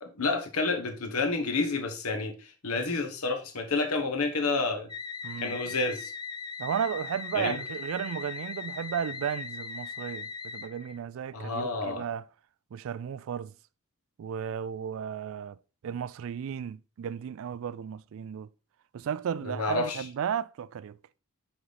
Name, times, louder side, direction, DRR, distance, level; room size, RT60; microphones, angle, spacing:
voice 1, 0.0-4.9 5.4-6.1 7.3-7.6 11.3-12.0 19.4-20.1, left 3 dB, 80° left, 1.2 m, -29 dB
sound 1, 4.9-11.0, left 5 dB, 20° left, 0.4 m, -39 dB
voice 2, 5.2-5.6 6.6-12.3 12.7-13.5 14.2-15.6 15.8-18.5 18.9-21.0, right 8 dB, 65° right, 0.3 m, -34 dB
6.1 x 5.4 x 3.3 m
head